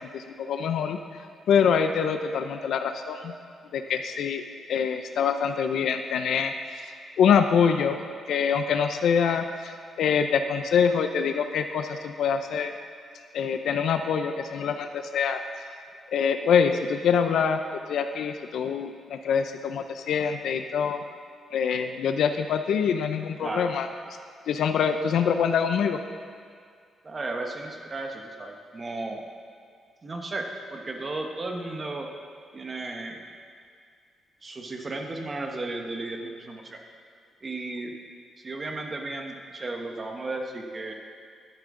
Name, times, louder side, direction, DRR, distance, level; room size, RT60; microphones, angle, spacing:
voice 1, 0.1-1.2 1.5-3.3 3.7-4.4 4.7-6.5 7.2-8.0 8.3-12.7 13.3-15.7 16.1-17.6 17.9-21.0 21.5-23.9 24.5-26.0, left 7 dB, 70° left, 7 dB, 0.5 m, -25 dB
voice 2, 27.0-29.2 30.0-32.1 32.5-33.2 34.4-36.8 37.4-37.9 38.4-40.9, right 2 dB, 25° right, 3 dB, 1.0 m, -34 dB
12.5 x 10.5 x 3.7 m, 2.1 s
cardioid pair, 160°, 0 cm